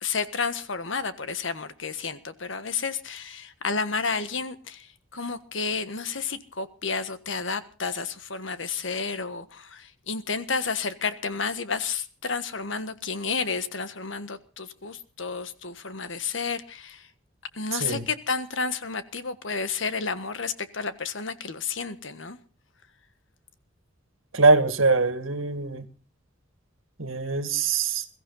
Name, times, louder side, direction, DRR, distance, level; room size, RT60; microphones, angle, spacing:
voice 1, 0.0-17.1 17.5-22.4, left 5 dB, 65° left, 1.5 m, -31 dB
voice 2, 17.7-18.1 24.3-25.9 27.0-28.1, right 3 dB, 80° right, 1.9 m, -22 dB
22.0 x 14.5 x 4.0 m
head